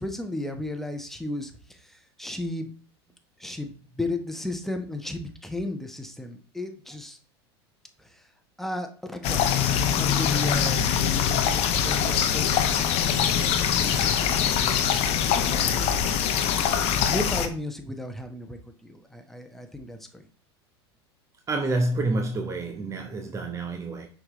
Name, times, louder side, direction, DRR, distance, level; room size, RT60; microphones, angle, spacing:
voice 1, 0.0-2.7 3.4-7.2 8.0-8.2 8.6-10.8 11.1-14.9 15.5-16.0 16.8-20.3, left 1 dB, ahead, 1.1 m, -35 dB
sound 1, 9.2-17.5, left 8 dB, 50° left, 0.9 m, -23 dB
voice 2, 21.5-24.1, right 2 dB, 20° right, 0.9 m, -28 dB
6.3 x 4.9 x 3.1 m
hypercardioid pair, 95°, 14 cm